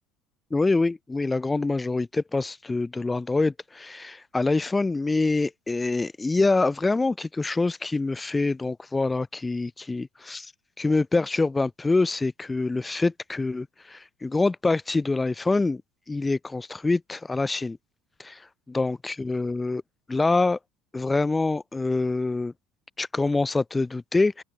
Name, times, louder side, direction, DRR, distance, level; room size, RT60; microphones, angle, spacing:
voice 1, 0.5-10.5 10.8-15.8 16.1-17.8 18.2-18.4 18.7-19.8 20.1-20.6 20.9-22.5 23.0-24.4, left 3 dB, 15° left, 3.2 m, -25 dB
open air
supercardioid pair, 85°, 0 cm